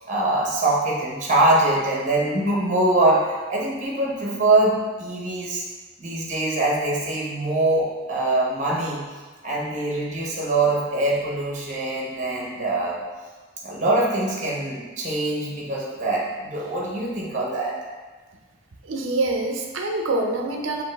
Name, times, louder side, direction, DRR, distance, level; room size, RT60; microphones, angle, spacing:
voice 1, 0.1-5.6 6.0-9.1 9.4-13.0 13.6-17.8, right 2 dB, 40° right, -4 dB, 1.0 m, -23 dB
voice 2, 18.8-20.8, right 2 dB, 70° right, 2 dB, 0.6 m, -25 dB
5.2 x 2.7 x 3.4 m, 1.3 s
head